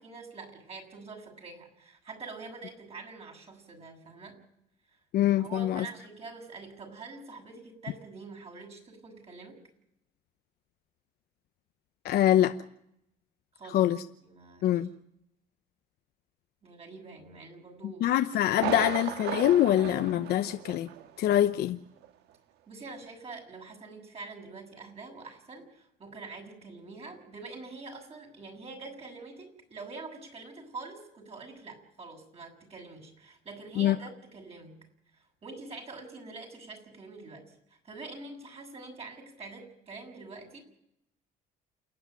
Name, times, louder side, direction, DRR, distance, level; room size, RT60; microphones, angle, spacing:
voice 1, 0.0-4.4 5.4-9.6 13.5-13.8 14.2-14.9 16.6-18.1 20.4-20.6 22.7-34.8 35.1-40.6, right 3 dB, 35° right, 7.2 m, -45 dB
voice 2, 5.1-5.9 12.0-12.6 13.7-14.0 14.6-14.9 17.8-20.9 21.2-21.8 33.8-34.0, left 12 dB, 70° left, 0.9 m, -24 dB
Thunder, 18.5-21.1 21.4-21.5 22.0-22.1, right 11 dB, 80° right, 1.6 m, -35 dB
28.5 x 10.0 x 9.3 m
cardioid pair, 110°, 17 cm